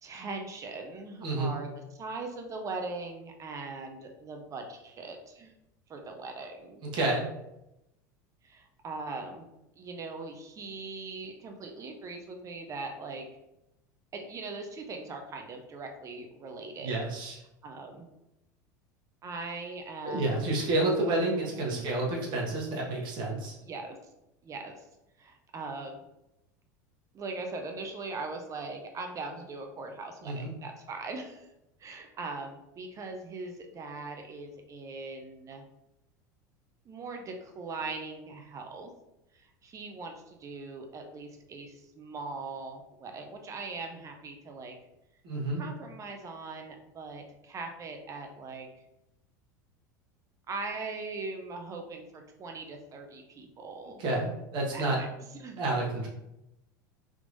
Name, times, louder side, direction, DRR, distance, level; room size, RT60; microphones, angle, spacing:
voice 1, 0.0-1.7 2.0-5.5 5.9-6.8 8.4-9.5 9.8-13.3 14.1-17.0 17.6-18.1 19.2-20.4 21.1-21.9 22.3-22.4 23.6-24.0 24.4-24.8 25.2-26.0 27.1-31.5 31.8-35.6 36.8-38.9 39.3-44.7 45.6-48.7 50.5-54.0 54.6-55.1 55.3-55.6, right 3 dB, 30° right, 4 dB, 0.7 m, -40 dB
voice 2, 1.2-1.6 6.9-7.3 16.8-17.4 20.0-23.5 30.2-30.5 45.2-45.7 54.0-55.0 55.6-56.1, right 2 dB, 50° right, -2 dB, 1.3 m, -29 dB
3.6 x 2.9 x 2.6 m, 0.88 s
hypercardioid pair, 90°, 10 cm